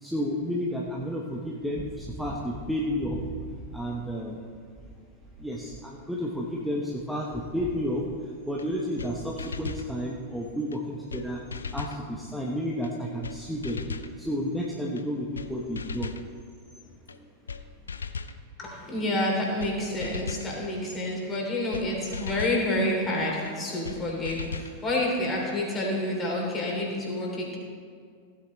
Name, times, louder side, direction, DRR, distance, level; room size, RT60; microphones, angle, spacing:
voice 1, 0.0-3.3 3.7-4.4 5.4-8.0 8.5-11.4 11.7-13.9 14.2-16.1 17.2-17.3, equal, ahead, -3 dB, 1.1 m, -31 dB
sound 1, 8.6-8.7 9.0-9.1 9.4-9.9 10.7-10.8 11.1-11.2 11.5-12.0 12.8-12.9 13.2-13.4 13.6-14.1 15.0-15.1 15.3-15.5 15.8-16.2 17.1-17.2 17.5-17.6 17.9-18.4 19.2-19.3 19.6-19.7 20.0-20.5 21.3-21.4 21.7-21.9 22.1-22.6 23.5-23.6 23.8-24.0 24.2-24.7, left 5 dB, 75° left, 0.5 m, -36 dB
voice 2, 18.6-27.6, left 1 dB, 20° left, -2 dB, 3.2 m, -28 dB
16.0 x 9.3 x 3.2 m, 2.1 s
figure-of-eight pair, 90°, 0 cm